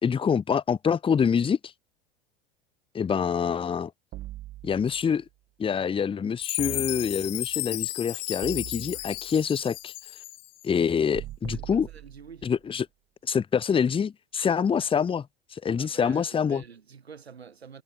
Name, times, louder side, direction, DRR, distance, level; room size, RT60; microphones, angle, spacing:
voice 1, 0.0-1.6 2.9-3.9 4.6-5.2 5.6-9.9 10.6-11.9 12.4-12.9 13.3-15.3 15.5-16.6, left 7 dB, 15° left, 0.8 m, -26 dB
sound 1, 4.1-5.2 6.6-7.6 8.4-9.5 11.1-12.6, right 15 dB, 45° right, 5.3 m, -42 dB
Chime, 6.4-10.7, left 22 dB, 60° left, 1.0 m, -34 dB
voice 2, 11.5-12.5 15.7-17.8, right 6 dB, 85° right, 6.0 m, -47 dB
hypercardioid pair, 80°, 31 cm